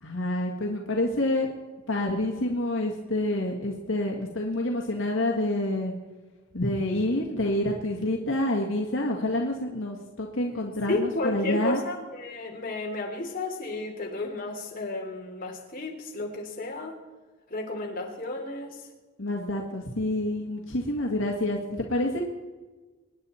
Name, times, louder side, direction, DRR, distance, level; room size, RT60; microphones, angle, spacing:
voice 1, 0.0-1.5 1.9-5.9 6.5-11.8 19.2-22.2, left 1 dB, 75° left, 0 dB, 1.8 m, -28 dB
voice 2, 10.9-17.0 17.5-18.8, left 2 dB, 45° left, 0 dB, 3.0 m, -32 dB
24.5 x 10.0 x 4.3 m, 1.3 s
head